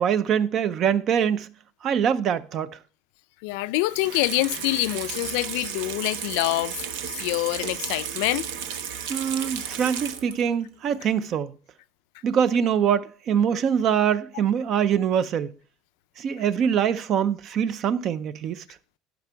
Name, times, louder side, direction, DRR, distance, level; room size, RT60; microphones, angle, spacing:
voice 1, 0.0-1.5 1.8-2.8 9.1-11.6 12.2-15.5 16.2-18.6, right 8 dB, 35° right, 0.4 m, -24 dB
voice 2, 3.4-6.9 7.2-8.5, left 19 dB, 75° left, 0.4 m, -25 dB
Water tap faucet / Sink (filling or washing), 3.8-10.5 10.9-11.0, right 8 dB, 80° right, 0.9 m, -34 dB
11.5 x 5.0 x 4.5 m
cardioid pair, 180°, 0 cm